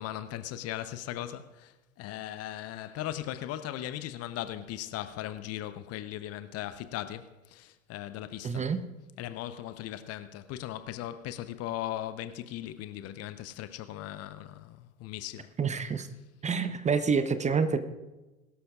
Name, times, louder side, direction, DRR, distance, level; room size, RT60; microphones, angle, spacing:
voice 1, 0.0-8.7 9.2-15.5, left 12 dB, 35° left, 0.8 m, -38 dB
voice 2, 8.4-8.8 15.6-16.1 16.4-17.8, right 5 dB, 15° right, 0.8 m, -27 dB
21.5 x 13.0 x 2.4 m
figure-of-eight pair, 80°, 42 cm